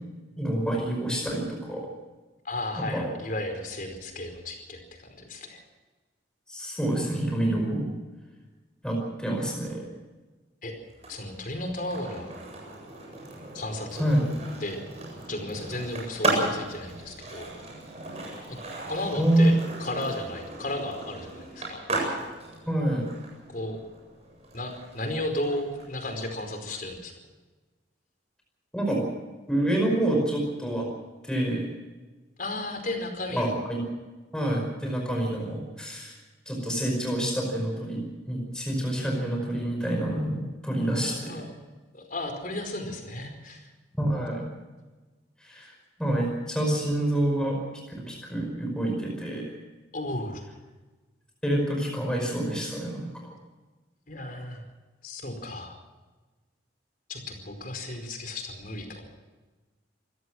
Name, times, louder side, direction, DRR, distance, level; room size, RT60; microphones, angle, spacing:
voice 1, 0.4-1.8 2.9-3.0 6.5-7.9 8.8-9.9 14.0-14.2 19.2-19.5 22.7-23.1 28.7-29.1 29.5-30.9 31.2-31.7 33.3-33.8 34.3-36.2 36.5-41.4 44.0-44.5 45.4-45.7 46.0-47.6 48.0-49.4 51.4-53.1, right 1 dB, 5° left, 0 dB, 5.3 m, -27 dB
voice 2, 2.4-5.6 10.6-10.7 11.1-12.3 13.5-14.0 14.6-14.8 15.3-17.5 18.5-18.6 18.9-19.5 19.8-21.8 23.5-23.8 24.5-27.1 32.4-33.6 41.1-41.5 41.9-43.7 49.9-50.4 54.1-54.6 55.0-55.8 57.1-59.0, left 1 dB, 45° left, 5 dB, 4.9 m, -34 dB
Skateboard, 10.9-26.8, right 2 dB, 35° right, 8.0 m, -36 dB
26.0 x 17.0 x 6.2 m, 1.3 s
head